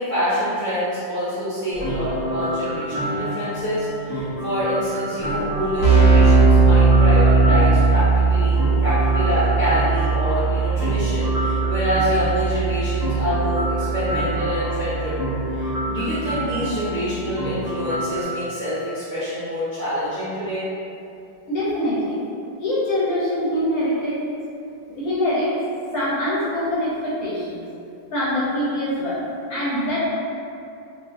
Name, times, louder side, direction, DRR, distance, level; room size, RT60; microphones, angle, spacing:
voice 1, 0.0-20.7, equal, 45° right, -15 dB, 0.6 m, -26 dB
sound 1, 1.7-18.2, equal, 10° left, 0.5 m, -29 dB
Keyboard (musical), 5.2-5.3 5.5-16.1, right 4 dB, 70° right, 1.2 m, -19 dB
voice 2, 21.5-22.2 22.6-24.2 24.9-25.6 25.9-27.6 28.1-29.2 29.5-30.0, left 1 dB, 65° left, -9 dB, 1.0 m, -24 dB
3.1 x 2.6 x 2.6 m, 2.6 s
omnidirectional pair, 2.0 m